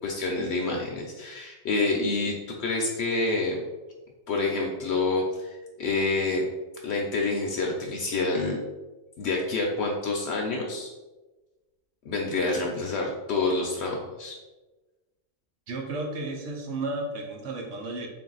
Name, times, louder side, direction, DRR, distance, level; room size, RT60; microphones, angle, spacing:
voice 1, 0.0-3.6 4.3-6.5 6.8-8.6 9.2-10.9 12.0-14.4, left 3 dB, 65° left, 0 dB, 0.8 m, -28 dB
voice 2, 15.7-18.1, right 2 dB, 75° right, 1 dB, 1.0 m, -33 dB
3.5 x 2.5 x 3.8 m, 1.1 s
omnidirectional pair, 1.3 m